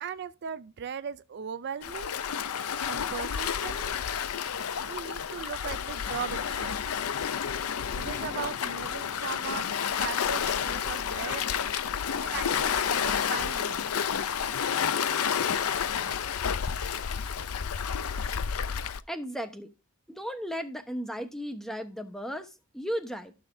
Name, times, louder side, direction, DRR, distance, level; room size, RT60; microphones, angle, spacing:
voice 1, 0.0-2.2 2.9-3.9 4.9-6.8 8.0-9.7 10.0-11.5 12.2-13.9, right 7 dB, 50° right, 0.4 m, -38 dB
Waves surf, 1.8-19.0, left 7 dB, 85° left, 0.6 m, -30 dB
voice 2, 19.1-19.7 20.1-23.3, equal, ahead, 1.0 m, -35 dB
14.5 x 6.4 x 2.7 m
head